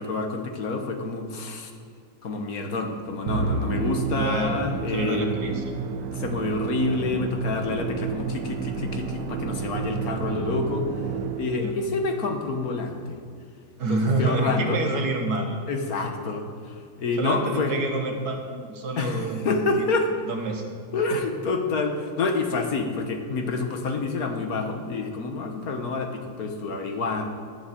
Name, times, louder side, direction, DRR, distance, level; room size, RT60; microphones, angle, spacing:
voice 1, 0.0-1.7 2.2-5.3 6.1-10.9 11.4-13.2 13.9-14.8 15.7-17.7 19.0-20.1 20.9-27.3, left 3 dB, 60° left, 4 dB, 1.6 m, -28 dB
Musical instrument, 3.3-11.8, right 5 dB, 80° right, 1.4 m, -30 dB
voice 2, 4.2-4.6 4.9-5.6 11.6-11.8 13.8-15.5 17.2-19.4 20.3-20.7 21.1-21.2, right 2 dB, 65° right, 3 dB, 1.9 m, -27 dB
11.0 x 7.1 x 8.6 m, 2.3 s
omnidirectional pair, 1.8 m